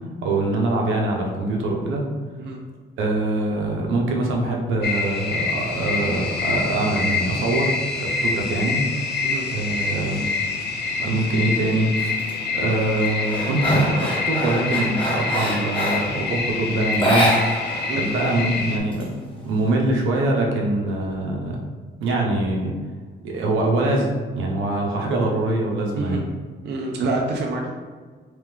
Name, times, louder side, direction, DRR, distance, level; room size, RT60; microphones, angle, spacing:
voice 1, 0.2-2.0 3.0-8.8 9.5-10.2 11.0-11.9 12.5-17.3 17.9-19.1 19.4-21.6 22.0-22.7 23.2-24.1 24.3-26.2, right 2 dB, 85° right, 0 dB, 0.8 m, -23 dB
sound 1, 4.8-18.8, left 4 dB, 55° left, 0.6 m, -26 dB
sound 2, 12.0-12.3 12.7-16.2 16.9-17.9 18.1-18.2 18.6-19.6, equal, 25° left, 1.3 m, -24 dB
voice 2, 26.6-27.7, right 3 dB, 60° right, 0 dB, 0.6 m, -27 dB
3.3 x 3.2 x 3.6 m, 1.5 s
cardioid pair, 90°, 20 cm